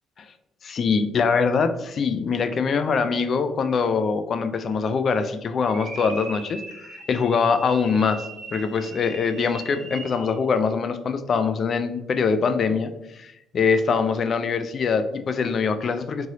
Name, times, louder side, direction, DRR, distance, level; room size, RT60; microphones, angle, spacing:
voice 1, 0.6-8.3 8.5-16.3, left 5 dB, 50° left, 9 dB, 0.3 m, -23 dB
sound 1, 5.7-10.4, right 2 dB, 70° right, 0.9 m, -40 dB
2.9 x 2.7 x 2.8 m, 0.88 s
cardioid pair, 85°, 0 cm